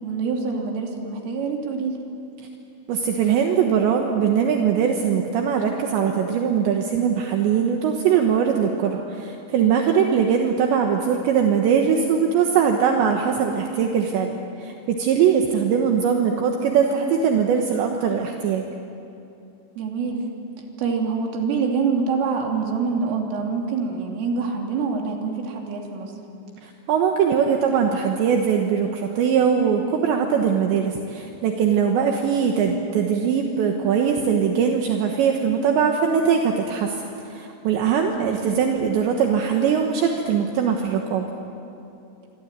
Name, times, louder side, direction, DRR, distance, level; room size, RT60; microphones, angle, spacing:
voice 1, 0.0-2.0 19.8-20.3 20.8-26.2 38.2-38.5, right 5 dB, 90° right, 1 dB, 5.5 m, -25 dB
voice 2, 2.9-18.7 26.6-36.9 37.3-41.3, right 7 dB, 70° right, 2 dB, 3.4 m, -21 dB
26.0 x 25.0 x 9.0 m, 2.8 s
omnidirectional pair, 5.7 m